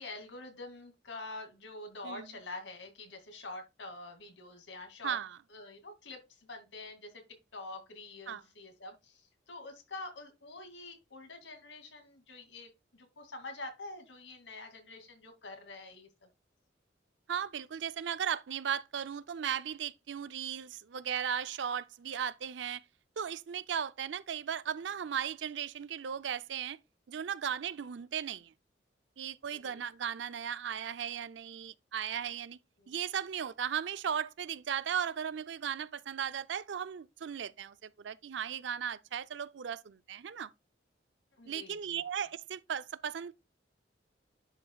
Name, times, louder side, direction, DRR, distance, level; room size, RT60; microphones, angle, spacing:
voice 1, 0.0-5.2 5.5-7.2 7.5-16.3 29.5-29.9 32.8-32.9 41.3-42.0, left 2 dB, 80° left, 2.3 m, -46 dB
voice 2, 5.0-5.4 8.3-8.4 17.3-22.8 23.2-26.8 27.1-28.5 29.2-32.6 32.9-40.5 41.5-43.3, right 8 dB, 80° right, 0.4 m, -36 dB
10.5 x 5.1 x 2.3 m
head